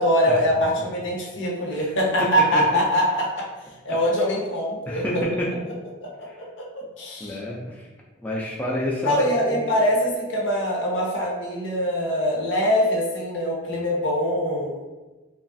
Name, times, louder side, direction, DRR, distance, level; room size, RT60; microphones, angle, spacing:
voice 1, 0.0-3.5 3.8-5.0 6.0-6.1 6.6-6.7 7.0-7.4 9.0-14.7, equal, 70° left, -2 dB, 0.7 m, -23 dB
voice 2, 4.8-5.5 6.3-6.4 7.2-7.9 8.2-9.7, left 1 dB, 10° left, -5 dB, 0.3 m, -29 dB
3.0 x 2.3 x 2.6 m, 1.2 s
head